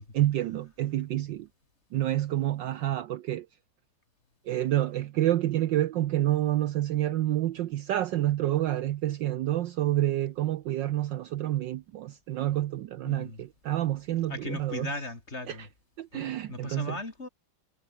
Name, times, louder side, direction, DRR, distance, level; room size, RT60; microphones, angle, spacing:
voice 1, 0.0-1.5 1.9-3.5 4.4-14.9 15.5-15.7 16.0-17.0, right 14 dB, 70° right, 1.2 m, -28 dB
voice 2, 13.1-13.4 14.3-15.7 16.1-17.3, left 2 dB, 30° left, 3.5 m, -38 dB
omnidirectional pair, 2.4 m